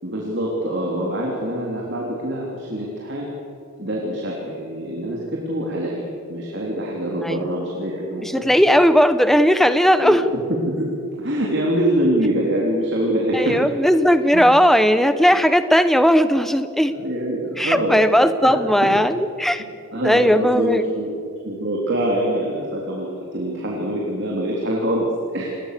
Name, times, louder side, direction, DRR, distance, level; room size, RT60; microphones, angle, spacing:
voice 1, 0.0-3.4 3.8-8.8 10.0-10.9 11.2-13.7 14.3-14.5 16.9-18.1 18.4-18.6 18.9-19.0 19.9-25.5, right 1 dB, 50° right, -3 dB, 3.5 m, -25 dB
voice 2, 8.2-10.2 13.3-16.9 17.6-19.6 20.0-20.8, equal, ahead, 11 dB, 0.8 m, -17 dB
28.5 x 21.0 x 6.8 m, 2.6 s
head